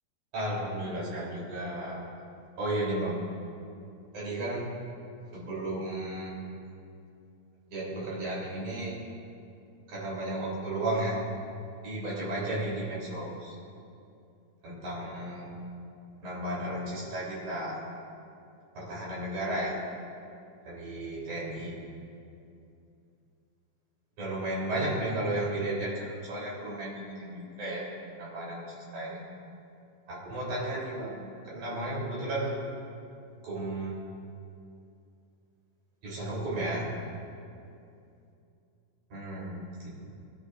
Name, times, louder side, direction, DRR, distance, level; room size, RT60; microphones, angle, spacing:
voice 1, 0.3-2.0 2.6-3.2 4.1-4.8 5.3-6.4 7.7-9.0 9.9-11.2 11.8-13.5 14.6-15.5 16.2-17.9 18.7-19.7 20.6-21.8 24.2-27.9 28.2-29.2 30.1-32.6 33.4-34.0 36.0-36.9 39.1-40.0, right 1 dB, 60° right, -6 dB, 4.8 m, -34 dB
22.0 x 11.5 x 2.6 m, 2.6 s
omnidirectional pair, 3.9 m